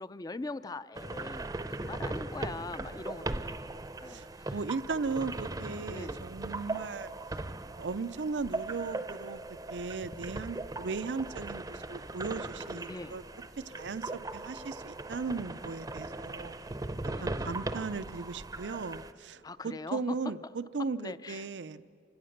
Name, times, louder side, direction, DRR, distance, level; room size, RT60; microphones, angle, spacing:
voice 1, 0.0-1.5 1.8-3.7 4.0-4.6 5.9-6.2 12.9-13.2 17.0-17.3 19.4-20.2 21.0-21.5, left 3 dB, 20° left, 15 dB, 0.4 m, -41 dB
sound 1, 1.0-19.1, right 2 dB, 20° right, 0.6 m, -39 dB
voice 2, 4.1-7.1 7.8-9.4 9.7-13.2 13.7-16.6 17.0-21.8, right 4 dB, 85° right, 15 dB, 0.6 m, -37 dB
28.5 x 17.0 x 6.6 m, 2.6 s
head